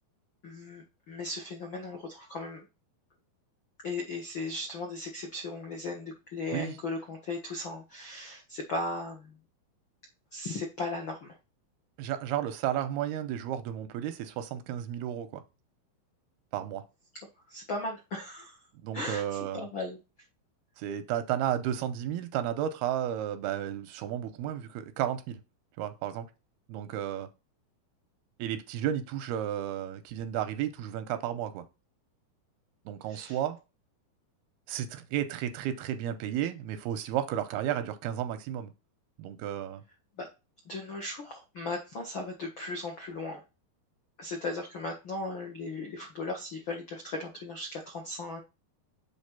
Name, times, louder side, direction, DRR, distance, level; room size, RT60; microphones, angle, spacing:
voice 1, 0.4-2.6 3.8-9.4 10.3-11.4 17.5-18.6 18.9-19.2 19.5-20.0 33.1-33.4 40.2-40.3 40.6-43.4 44.2-48.4, left 2 dB, 70° left, 1.1 m, -37 dB
voice 2, 12.0-15.4 16.5-16.8 18.8-19.7 20.8-25.4 25.8-26.3 26.7-27.3 28.4-31.7 32.9-33.6 34.7-38.7 39.2-39.8, right 11 dB, 85° right, 2.6 m, -33 dB
7.5 x 3.4 x 5.8 m
omnidirectional pair, 4.5 m